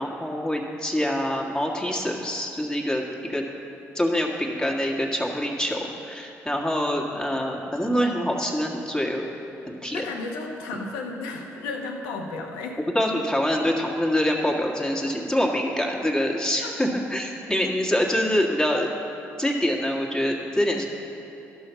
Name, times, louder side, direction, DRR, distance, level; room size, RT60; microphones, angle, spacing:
voice 1, 0.0-3.0 3.3-3.4 4.0-9.3 9.7-10.0 12.9-18.9 19.4-20.9, equal, 10° left, -1 dB, 1.8 m, -25 dB
voice 2, 9.9-12.8 16.6-16.7, left 3 dB, 85° left, 1 dB, 1.1 m, -33 dB
12.5 x 5.7 x 5.7 m, 3.0 s
hypercardioid pair, 55°, 6 cm